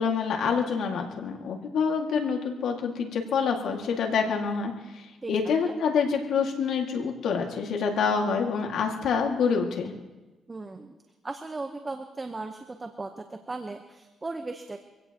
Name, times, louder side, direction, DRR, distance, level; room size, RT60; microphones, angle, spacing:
voice 1, 0.0-9.9, left 5 dB, 75° left, 2 dB, 2.1 m, -27 dB
voice 2, 10.5-11.0 11.2-14.8, right 3 dB, 25° right, 6 dB, 1.0 m, -37 dB
24.0 x 16.5 x 3.0 m, 1.1 s
cardioid pair, 90°, 0 cm